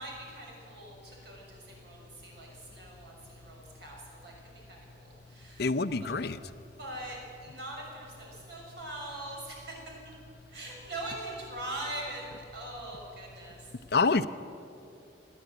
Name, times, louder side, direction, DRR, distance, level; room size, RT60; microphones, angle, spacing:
voice 1, 0.0-5.7 6.0-6.2 6.8-9.9 10.5-13.7, right 1 dB, 65° right, -2 dB, 6.8 m, -42 dB
voice 2, 5.6-6.4 13.9-14.3, left 4 dB, 60° left, 13 dB, 0.6 m, -26 dB
28.5 x 10.5 x 9.3 m, 2.8 s
head